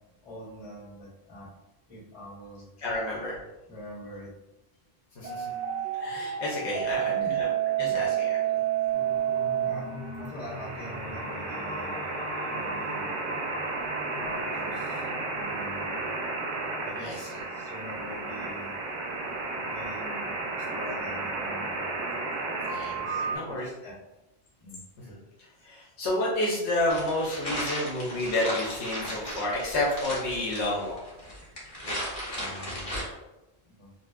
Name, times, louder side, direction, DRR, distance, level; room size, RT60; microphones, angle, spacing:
voice 1, 0.2-1.5 1.9-2.7 3.7-4.3 6.9-7.4 7.8-8.0 9.6-9.9 10.2-12.0 12.5-13.2 14.1-15.1 15.4-16.1 16.8-18.7 19.6-21.8 22.9-23.2 23.5-23.9 24.6-24.8 32.3-33.0 33.6-33.9, equal, 30° left, -11 dB, 1.5 m, -44 dB
voice 2, 2.8-3.4 5.1-5.4 5.9-7.5 7.8-8.4 17.0-17.4 22.7-23.7 25.1-25.2 25.6-31.0, left 1 dB, 80° left, -5 dB, 1.0 m, -30 dB
sound 1, 5.2-23.4, right 6 dB, 55° right, 0.5 m, -31 dB
sound 2, 8.9-18.1, equal, 15° left, 0.5 m, -41 dB
sound 3, 26.9-33.0, equal, 50° left, 1.1 m, -36 dB
3.9 x 2.0 x 2.4 m, 1.0 s
omnidirectional pair, 1.1 m